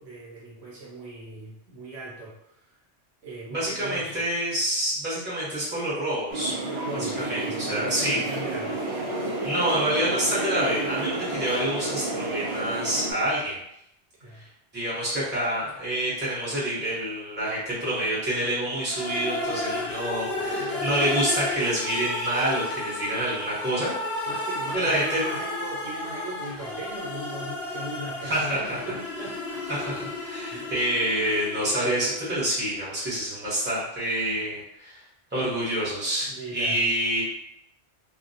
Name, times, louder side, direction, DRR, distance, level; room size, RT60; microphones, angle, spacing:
voice 1, 0.0-2.7 3.2-4.3 6.8-8.8 14.2-14.5 20.3-20.9 24.3-29.6 30.5-30.7 36.3-36.8, right 1 dB, 70° right, -5 dB, 0.9 m, -38 dB
voice 2, 3.5-6.5 6.9-8.2 9.4-13.6 14.7-24.3 24.7-25.2 28.2-28.6 29.7-35.0 35.3-37.2, right 1 dB, 10° right, -8 dB, 0.7 m, -27 dB
sound 1, 6.3-13.1, right 2 dB, 50° right, 0.4 m, -31 dB
sound 2, 18.9-32.7, left 2 dB, 65° left, 0.8 m, -33 dB
2.3 x 2.0 x 2.6 m, 0.79 s
omnidirectional pair, 1.2 m